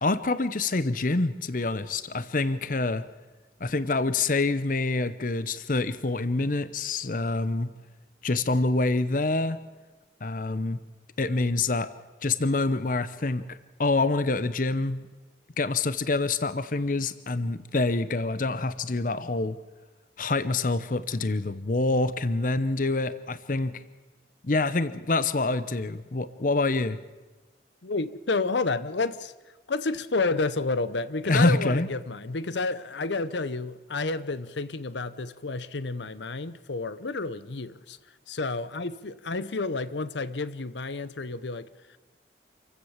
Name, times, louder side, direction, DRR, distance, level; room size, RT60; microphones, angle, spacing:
voice 1, 0.0-3.0 3.6-7.7 8.2-9.6 10.2-10.8 11.2-11.9 12.2-15.1 15.6-19.6 20.2-23.8 24.4-27.0 31.2-31.9, left 3 dB, 45° left, 0.8 m, -26 dB
voice 2, 27.8-29.3 29.7-38.0 38.3-41.7, left 3 dB, 75° left, 0.9 m, -30 dB
27.5 x 15.5 x 7.3 m
head